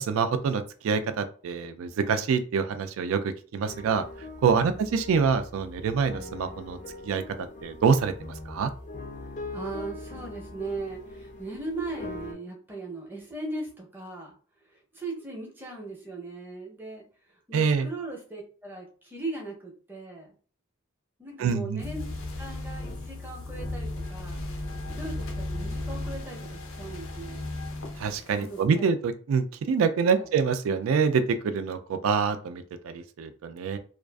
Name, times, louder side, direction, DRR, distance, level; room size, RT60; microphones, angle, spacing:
voice 1, 0.0-4.0 4.4-6.8 7.0-7.2 7.6-8.7 17.5-17.9 21.4-21.8 28.0-33.8, right 5 dB, 85° right, 10 dB, 0.3 m, -26 dB
sound 1, 3.7-12.3, left 2 dB, 35° left, 0.4 m, -41 dB
voice 2, 9.5-14.4 14.9-17.1 17.5-20.3 21.2-22.1 22.4-24.5 24.9-27.5 28.4-28.9 30.1-30.3, right 2 dB, 10° right, -1 dB, 0.6 m, -38 dB
sound 2, 21.8-28.6, left 2 dB, 80° left, 0.6 m, -35 dB
2.4 x 2.4 x 2.2 m, 0.41 s
head